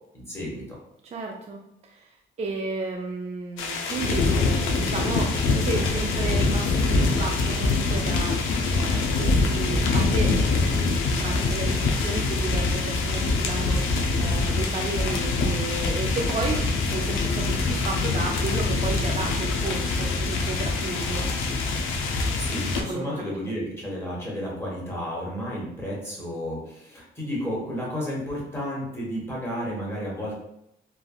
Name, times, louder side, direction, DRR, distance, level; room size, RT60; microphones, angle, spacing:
voice 1, 0.1-0.6 22.1-30.4, equal, 10° left, -4 dB, 1.3 m, -32 dB
voice 2, 1.0-21.3 22.7-23.2, right 3 dB, 35° right, 1 dB, 0.4 m, -33 dB
sound 1, 3.6-22.8, left 3 dB, 85° left, 0.5 m, -24 dB
3.3 x 2.2 x 2.3 m, 0.82 s
cardioid pair, 90°, 20 cm